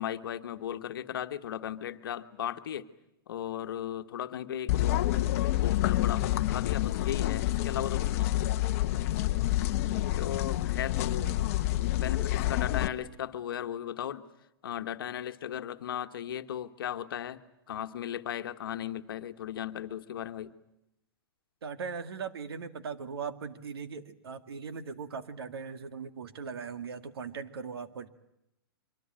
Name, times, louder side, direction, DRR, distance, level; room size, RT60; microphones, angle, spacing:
voice 1, 0.0-2.9 3.3-5.0 5.6-8.5 10.0-11.3 11.9-14.2 14.6-17.4 17.7-20.5, left 10 dB, 65° left, 9 dB, 1.5 m, -36 dB
sound 1, 4.7-12.9, left 15 dB, 35° left, 1.1 m, -28 dB
voice 2, 21.6-28.1, right 5 dB, 75° right, 10 dB, 2.2 m, -39 dB
24.5 x 24.5 x 9.0 m, 0.85 s
hypercardioid pair, 165°, 13 cm